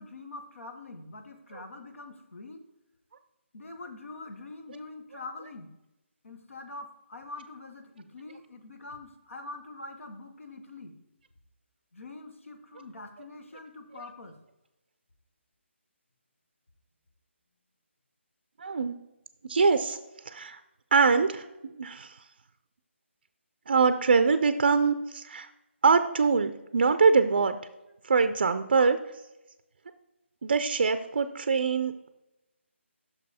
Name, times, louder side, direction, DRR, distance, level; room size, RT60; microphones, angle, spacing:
voice 1, 0.0-2.6 3.5-5.7 6.2-11.0 11.9-14.4, left 2 dB, 85° left, 6 dB, 1.2 m, -44 dB
voice 2, 18.6-19.0 19.5-20.0 20.3-20.6 20.9-22.1 23.7-25.5 25.8-27.6 28.1-29.0 30.4-32.1, right 5 dB, 45° right, 10 dB, 0.4 m, -24 dB
6.1 x 5.3 x 4.2 m, 0.96 s
hypercardioid pair, 175°, 7 cm